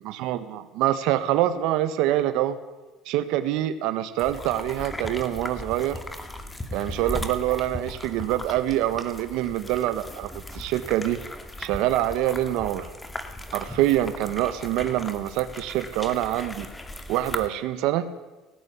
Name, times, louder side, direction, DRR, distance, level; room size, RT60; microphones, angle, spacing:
voice 1, 0.0-2.6 3.0-6.0 6.7-11.2 11.6-12.9 13.5-16.7 17.1-18.1, right 13 dB, 75° right, 11 dB, 1.6 m, -25 dB
sound 1, 4.2-17.5, left 1 dB, 10° left, 2.3 m, -37 dB
18.0 x 16.0 x 9.7 m, 1.1 s
cardioid pair, 110°, 0 cm